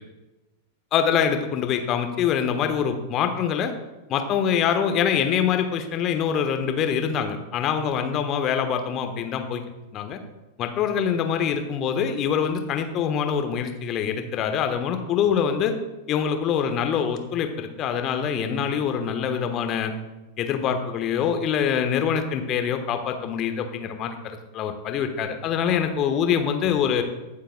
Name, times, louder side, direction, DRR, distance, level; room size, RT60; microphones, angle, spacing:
voice 1, 0.9-3.7 4.1-9.6 9.9-10.2 10.6-15.7 16.1-19.9 20.4-27.0, left 8 dB, 35° left, 6 dB, 1.2 m, -24 dB
22.0 x 7.4 x 2.3 m, 1.1 s
figure-of-eight pair, 90°, 0 cm